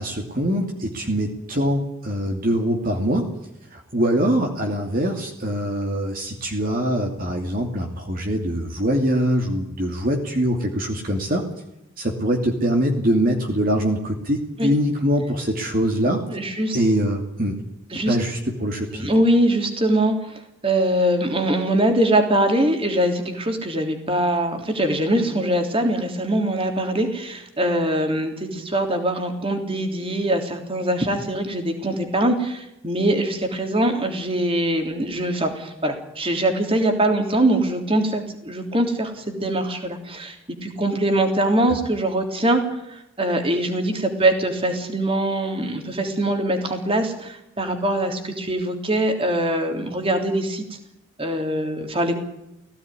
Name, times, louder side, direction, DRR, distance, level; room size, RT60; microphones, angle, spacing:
voice 1, 0.0-3.3 3.7-11.4 12.0-16.2 16.7-17.6 18.1-19.1 41.7-41.8, equal, 45° right, 2 dB, 2.8 m, -23 dB
voice 2, 16.3-16.8 17.9-18.2 18.9-40.4 40.6-42.6 42.9-50.6 51.2-52.2, right 1 dB, 25° right, 4 dB, 3.3 m, -22 dB
18.5 x 16.5 x 10.0 m, 0.85 s
head